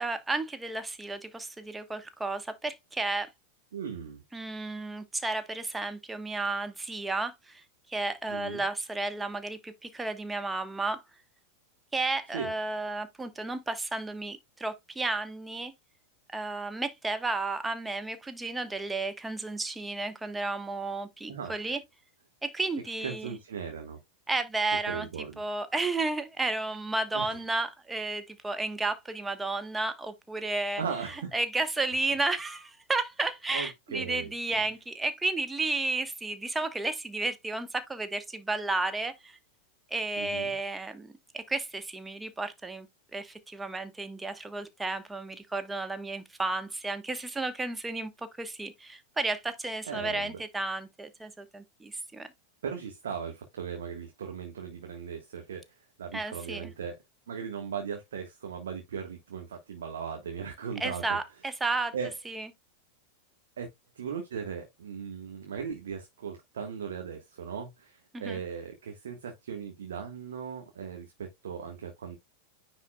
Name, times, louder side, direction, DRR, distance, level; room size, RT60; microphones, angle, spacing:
voice 1, 0.0-3.3 4.3-11.0 11.9-15.7 16.3-21.8 22.4-23.3 24.3-25.1 25.4-30.8 31.1-39.4 39.9-42.9 43.1-48.1 48.4-52.3 56.1-56.7 60.8-61.9 62.2-62.5 68.1-68.4, right 3 dB, 10° right, 1.2 m, -32 dB
voice 2, 3.7-4.2 8.3-8.6 12.3-12.5 21.3-21.8 23.0-24.0 24.9-25.4 27.1-27.4 30.8-31.3 33.5-34.3 40.2-40.6 49.9-50.4 52.6-57.0 57.3-61.2 61.9-62.1 63.6-63.7 63.9-72.2, right 6 dB, 65° right, 1.5 m, -38 dB
9.6 x 4.2 x 2.3 m
figure-of-eight pair, 90°, 0 cm